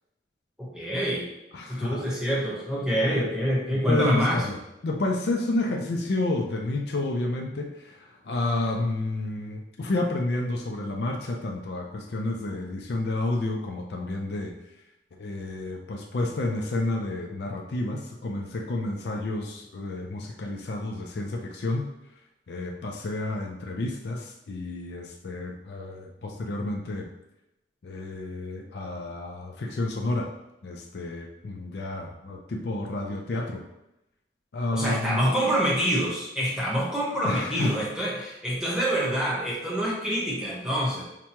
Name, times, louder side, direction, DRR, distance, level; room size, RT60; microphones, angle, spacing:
voice 1, 0.6-1.3 1.7-4.4 34.7-41.0, equal, 5° right, -5 dB, 1.0 m, -26 dB
voice 2, 1.5-2.0 3.9-14.5 15.2-21.8 22.5-27.1 27.8-30.3 30.6-33.6 34.5-35.2 37.2-37.7, left 2 dB, 60° left, 1 dB, 0.5 m, -30 dB
5.9 x 2.2 x 2.8 m, 0.90 s
head